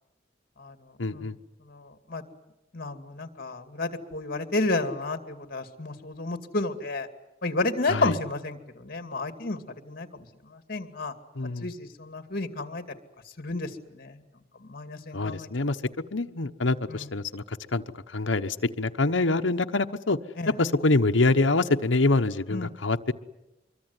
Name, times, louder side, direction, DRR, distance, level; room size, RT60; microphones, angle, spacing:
voice 1, 1.0-1.4 7.9-8.2 11.3-11.7 15.1-15.8 16.1-17.8 18.1-20.2 20.6-23.1, left 2 dB, 70° left, 7 dB, 1.1 m, -25 dB
voice 2, 1.7-2.2 2.7-7.1 7.4-9.6 9.9-10.1 10.5-11.1 11.6-12.8 13.4-14.2 14.6-15.5 16.9-17.1 20.4-20.5 22.5-22.7, left 2 dB, 50° left, 8 dB, 2.4 m, -31 dB
25.5 x 23.0 x 9.7 m, 0.96 s
head